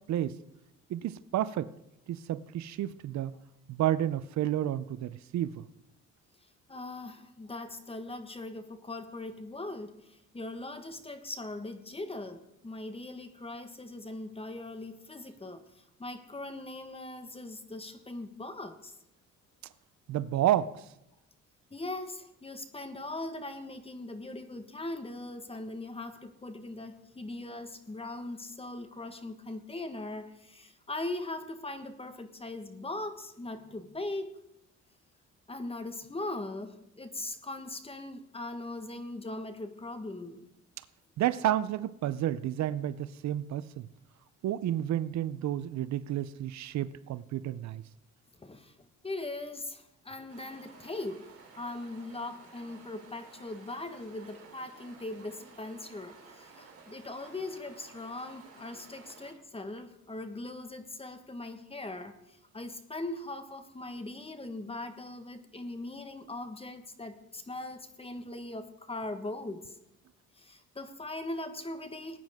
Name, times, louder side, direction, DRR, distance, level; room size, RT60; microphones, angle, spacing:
voice 1, 0.9-1.7 2.1-3.3 3.7-5.7 20.1-20.8 41.2-43.9 44.4-47.8, right 12 dB, 65° right, 16 dB, 0.6 m, -30 dB
voice 2, 6.7-18.9 21.7-34.4 35.5-40.5 48.4-48.7 49.0-69.8 70.4-72.2, left 2 dB, 20° left, 9 dB, 1.4 m, -40 dB
Stream, 50.3-59.3, right 4 dB, 50° right, 3.9 m, -54 dB
19.5 x 9.3 x 3.6 m, 0.86 s
cardioid pair, 90°, 30 cm